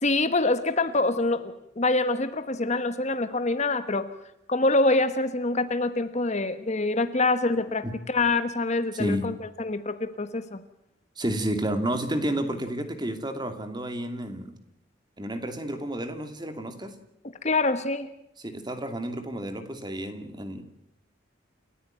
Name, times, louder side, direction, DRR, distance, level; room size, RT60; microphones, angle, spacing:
voice 1, 0.0-4.1 4.5-10.6 17.4-18.1, left 2 dB, 35° left, 11 dB, 1.2 m, -25 dB
voice 2, 8.9-9.3 11.2-14.6 15.2-16.9 18.4-20.6, right 1 dB, 20° right, 8 dB, 2.7 m, -31 dB
29.5 x 14.5 x 9.1 m, 0.79 s
head